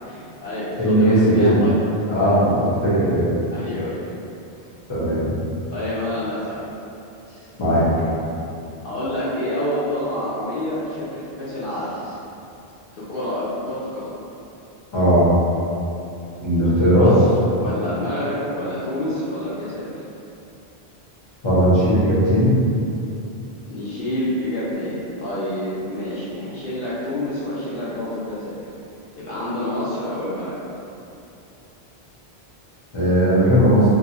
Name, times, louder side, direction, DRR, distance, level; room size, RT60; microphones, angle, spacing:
voice 1, 0.0-1.7 2.2-2.4 3.5-4.0 5.7-6.7 8.8-12.0 12.9-14.1 16.9-17.1 17.6-20.0 23.7-28.7 29.2-30.6, left 1 dB, 65° left, -11 dB, 0.7 m, -28 dB
voice 2, 0.8-1.6 2.1-3.4 4.9-5.3 7.6-7.9 14.9-15.3 16.4-17.1 21.4-22.5 32.9-33.8, equal, 30° left, -10 dB, 0.7 m, -17 dB
2.4 x 2.2 x 3.0 m, 2.7 s
omnidirectional pair, 1.1 m